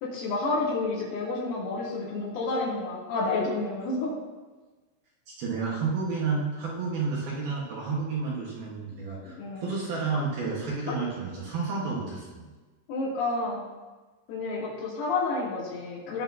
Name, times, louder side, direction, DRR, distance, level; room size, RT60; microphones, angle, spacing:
voice 1, 0.0-4.1 9.4-9.7 12.9-13.6 14.3-16.2, left 3 dB, 80° left, -6 dB, 5.4 m, -30 dB
voice 2, 5.3-12.5, right 4 dB, 60° right, -5 dB, 2.8 m, -31 dB
19.0 x 6.8 x 2.8 m, 1.3 s
omnidirectional pair, 5.8 m